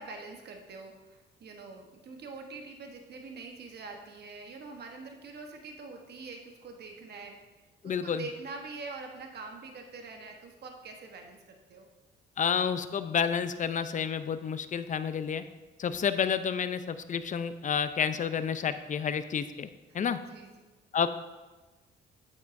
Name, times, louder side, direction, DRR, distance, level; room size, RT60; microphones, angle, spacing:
voice 1, 0.0-7.4 7.8-11.9 19.9-20.0 20.3-20.6, right 3 dB, 55° right, 3 dB, 1.2 m, -44 dB
voice 2, 7.8-8.2 12.4-15.4 15.8-19.7 19.9-20.2 20.9-21.1, left 7 dB, 40° left, 12 dB, 0.5 m, -30 dB
8.6 x 8.3 x 2.6 m, 1.2 s
cardioid pair, 90°, 20 cm